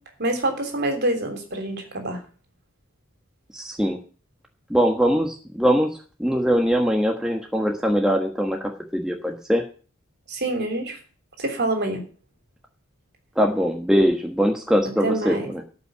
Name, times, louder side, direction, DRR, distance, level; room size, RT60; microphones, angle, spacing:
voice 1, 0.2-2.2 10.3-11.0 11.4-12.0 15.0-15.5, right 2 dB, 55° right, 5 dB, 3.3 m, -26 dB
voice 2, 3.5-4.0 4.7-5.9 6.2-9.6 13.4-15.6, equal, 5° right, 1 dB, 1.4 m, -22 dB
13.0 x 5.8 x 8.0 m, 0.38 s
head